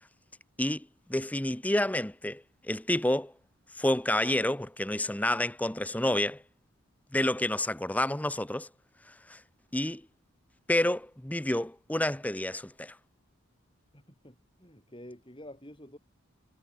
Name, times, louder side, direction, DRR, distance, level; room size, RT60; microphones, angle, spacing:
voice 1, 0.6-3.3 3.8-6.4 7.1-8.7 9.3-9.4 9.7-10.0 10.7-13.0, left 1 dB, 5° left, 0.7 m, -29 dB
voice 2, 13.9-16.0, left 1 dB, 25° left, 7.0 m, -49 dB
head